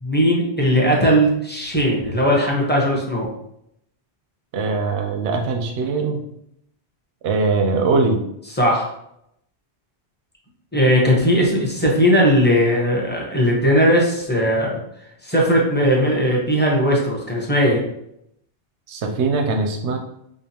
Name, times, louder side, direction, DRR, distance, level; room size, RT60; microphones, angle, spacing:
voice 1, 0.0-3.3 8.6-8.9 10.7-14.8 15.2-17.8, equal, 10° left, -3 dB, 0.8 m, -18 dB
voice 2, 4.5-6.2 7.2-8.2 18.9-20.0, right 3 dB, 90° right, 3 dB, 0.9 m, -21 dB
5.1 x 2.3 x 2.8 m, 0.76 s
omnidirectional pair, 1.1 m